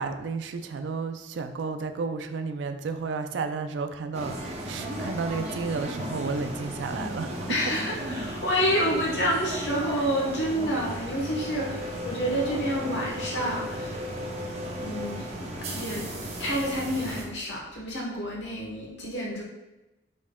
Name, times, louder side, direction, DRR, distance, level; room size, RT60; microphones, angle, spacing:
voice 1, 0.0-7.6, right 4 dB, 70° right, 8 dB, 0.4 m, -32 dB
sound 1, 4.1-17.2, equal, 35° right, 0.7 m, -35 dB
voice 2, 7.5-14.1 14.8-16.1 16.4-19.4, equal, 70° left, -3 dB, 1.2 m, -29 dB
5.3 x 3.5 x 2.2 m, 1.0 s
head